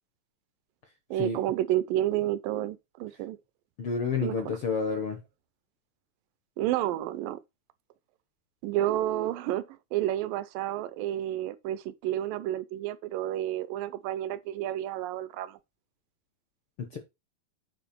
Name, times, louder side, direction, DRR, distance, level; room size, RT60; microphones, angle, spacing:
voice 1, 1.1-3.4 4.2-4.4 6.6-7.4 8.6-15.6 16.9-17.0, right 13 dB, 80° right, 2.2 m, -30 dB
voice 2, 3.8-5.2 16.8-17.0, left 4 dB, 60° left, 1.4 m, -30 dB
9.2 x 4.7 x 4.3 m
omnidirectional pair, 4.1 m